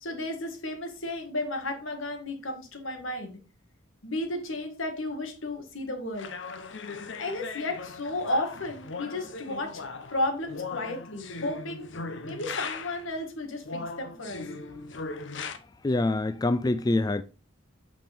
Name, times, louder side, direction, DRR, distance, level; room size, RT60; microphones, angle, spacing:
voice 1, 0.0-3.4 4.0-6.3 7.2-9.8 10.1-11.9 12.2-14.4, left 1 dB, 85° left, 1.7 m, -33 dB
sound 1, 6.2-13.1 13.6-15.6, left 4 dB, 65° left, 0.8 m, -39 dB
voice 2, 15.8-17.2, left 2 dB, 20° left, 0.3 m, -25 dB
8.5 x 5.3 x 3.4 m
head